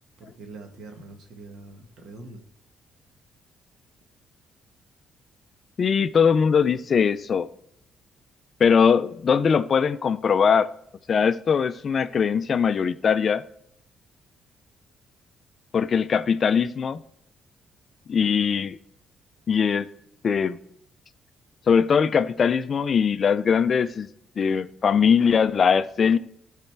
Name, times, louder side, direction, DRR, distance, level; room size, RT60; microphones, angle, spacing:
voice 1, 0.2-2.4, right 3 dB, 65° right, 1.5 m, -43 dB
voice 2, 5.8-7.5 8.6-10.7 11.1-13.4 15.7-17.0 18.1-18.8 19.5-19.9 20.2-20.6 21.7-24.1 24.4-26.2, left 6 dB, 40° left, 0.3 m, -21 dB
12.0 x 4.1 x 4.5 m
cardioid pair, 130°, 0 cm